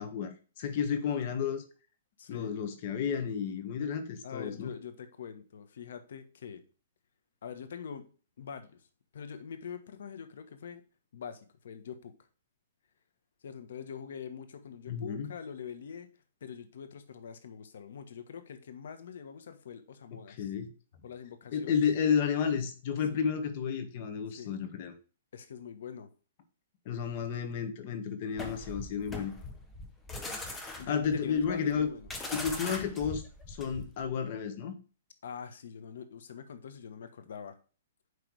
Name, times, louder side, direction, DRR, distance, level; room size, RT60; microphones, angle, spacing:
voice 1, 0.0-1.6 2.3-4.7 14.9-15.3 20.3-20.7 21.5-24.9 26.8-29.3 30.9-31.9 32.3-34.7, left 7 dB, 45° left, 1.4 m, -32 dB
voice 2, 2.2-2.5 4.2-6.6 7.4-8.1 8.4-8.9 9.1-10.8 11.1-12.1 13.4-16.1 16.4-20.5 21.0-21.8 23.1-23.3 24.4-24.5 25.3-26.1 30.8-32.1 35.2-37.6, left 7 dB, 70° left, 1.2 m, -44 dB
sound 1, 28.4-34.1, left 2 dB, 10° left, 1.0 m, -41 dB
9.5 x 3.4 x 4.7 m
hypercardioid pair, 155°, 0 cm